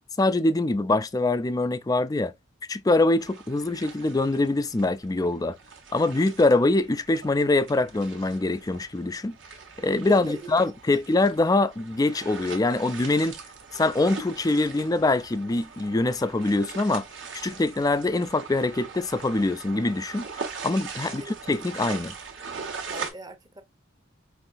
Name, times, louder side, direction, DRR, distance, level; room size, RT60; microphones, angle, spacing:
voice 1, 0.2-2.3 2.7-5.6 5.9-9.4 9.8-13.4 13.7-17.0 17.3-20.3 20.6-21.2 21.5-22.2, left 2 dB, 20° left, 0.4 m, -24 dB
sound 1, 3.2-23.1, right 5 dB, 65° right, 1.4 m, -41 dB
voice 2, 10.1-11.0 21.0-21.3 22.9-23.6, right 1 dB, 20° right, 0.7 m, -41 dB
5.5 x 3.1 x 2.6 m
head